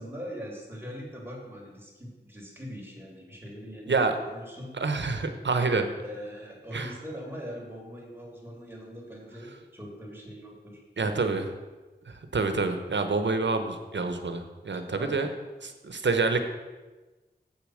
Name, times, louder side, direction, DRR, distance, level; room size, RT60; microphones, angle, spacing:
voice 1, 0.0-4.7 6.0-11.4 15.0-15.3, equal, 10° right, -2 dB, 3.3 m, -41 dB
voice 2, 4.8-5.9 6.7-6.9 11.0-11.5 12.1-15.3 15.6-16.4, right 3 dB, 90° right, 7 dB, 1.0 m, -27 dB
8.0 x 6.9 x 6.4 m, 1.2 s
wide cardioid pair, 45°, 18 cm